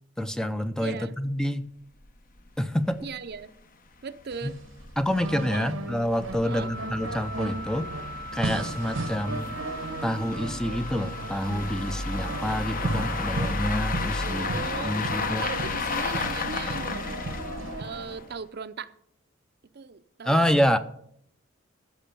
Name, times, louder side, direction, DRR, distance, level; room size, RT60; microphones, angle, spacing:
voice 1, 0.2-1.7 2.6-3.1 4.4-4.5 5.0-7.9 8.3-9.6 10.0-14.5 14.8-15.5 20.2-20.8, equal, 5° left, 0.5 m, -27 dB
voice 2, 0.8-1.2 3.0-3.5 4.0-4.6 5.5-5.6 6.4-6.7 14.2-15.0 15.4-17.1 17.8-18.9 19.7-20.4, right 5 dB, 55° right, 0.6 m, -37 dB
sound 1, 2.0-2.1 2.4-2.5 2.9-3.0 3.3-3.4 4.1-18.4, left 3 dB, 45° left, 1.0 m, -33 dB
sound 2, 4.3-17.8, right 2 dB, 90° right, 1.1 m, -36 dB
Wind instrument woodwind instrument, 6.4-13.3, equal, 80° left, 3.4 m, -41 dB
15.0 x 6.2 x 6.9 m
head